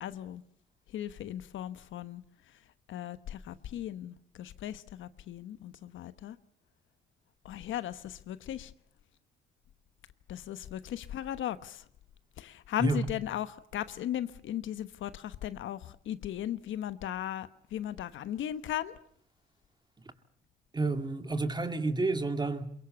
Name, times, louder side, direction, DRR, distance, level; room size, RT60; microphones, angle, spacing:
voice 1, 0.0-0.4 0.9-2.2 2.9-6.4 7.4-8.7 10.3-11.8 12.4-18.9, left 11 dB, 75° left, 1.1 m, -37 dB
voice 2, 20.7-22.7, right 3 dB, 20° right, 2.2 m, -30 dB
23.0 x 22.5 x 8.2 m
cardioid pair, 90°, 20 cm